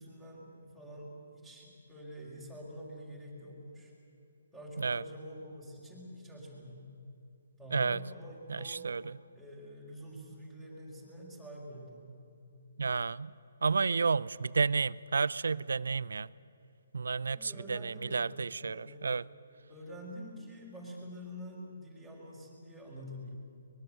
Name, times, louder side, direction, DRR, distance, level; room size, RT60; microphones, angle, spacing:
voice 1, 0.0-3.9 4.5-6.9 7.6-8.8 9.3-12.1 17.3-19.1 19.7-23.4, equal, ahead, -5 dB, 5.1 m, -47 dB
voice 2, 8.5-9.1 12.8-13.3 13.6-16.3 16.9-19.2, right 4 dB, 75° right, 20 dB, 0.6 m, -31 dB
24.0 x 21.0 x 7.8 m, 2.8 s
hypercardioid pair, 145°, 0 cm